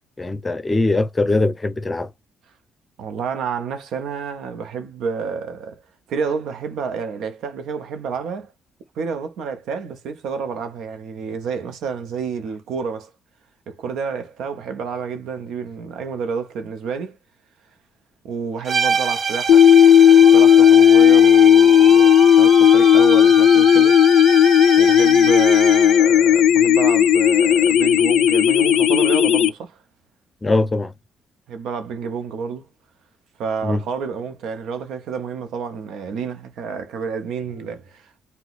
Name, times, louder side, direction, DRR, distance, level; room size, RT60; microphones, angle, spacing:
voice 1, 0.2-2.1 30.4-30.9 33.6-33.8, left 2 dB, 20° left, 0.5 m, -21 dB
voice 2, 3.0-5.8 6.1-8.5 9.0-13.1 13.7-17.2 18.2-19.7 20.3-24.0 24.8-29.8 31.5-32.6 33.4-38.2, right 6 dB, 80° right, 0.7 m, -29 dB
sound 1, 18.7-26.1, right 5 dB, 45° right, 0.7 m, -25 dB
sound 2, 19.5-29.5, left 9 dB, 80° left, 0.3 m, -13 dB
2.8 x 2.1 x 3.9 m
cardioid pair, 90°, 0 cm